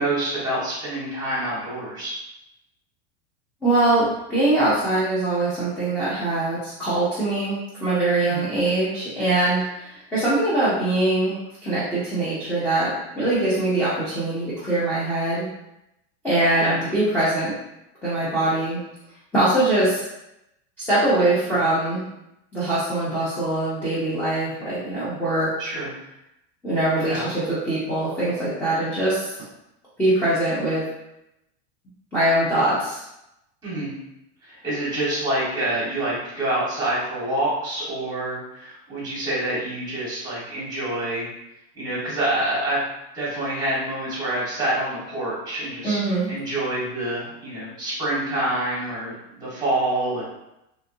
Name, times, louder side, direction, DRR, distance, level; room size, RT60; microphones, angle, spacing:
voice 1, 0.0-2.2 8.2-8.4 16.5-16.8 25.6-25.9 27.0-27.3 33.6-33.9 34.4-41.3 41.7-42.8 43.1-46.0 46.3-50.2, right 1 dB, 10° right, -7 dB, 1.3 m, -27 dB
voice 2, 3.6-11.4 11.6-15.5 16.2-17.5 18.0-18.8 19.3-20.0 20.9-22.0 22.5-25.5 26.6-29.3 30.0-30.9 32.1-33.0 45.8-46.3, right 2 dB, 5° left, -11 dB, 0.5 m, -22 dB
2.9 x 2.4 x 2.5 m, 0.86 s
supercardioid pair, 150°, 33 cm